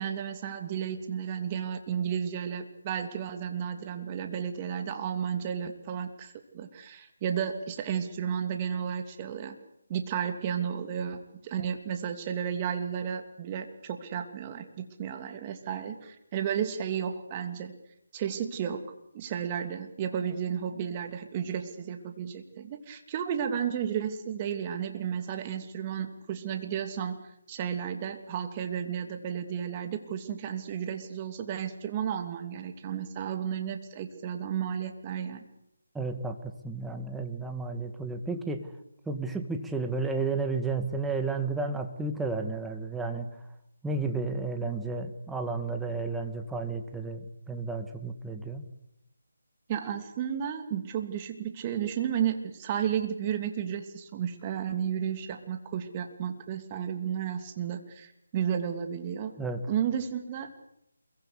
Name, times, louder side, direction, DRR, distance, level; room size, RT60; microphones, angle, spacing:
voice 1, 0.0-9.6 9.9-17.7 18.1-18.8 19.1-35.4 49.7-59.3 59.7-60.6, right 8 dB, 25° right, 7 dB, 2.9 m, -33 dB
voice 2, 35.9-38.7 39.1-43.3 43.8-48.6 59.4-59.6, right 3 dB, 5° right, 5 dB, 2.0 m, -32 dB
28.0 x 23.0 x 8.4 m, 0.82 s
figure-of-eight pair, 160°, 0 cm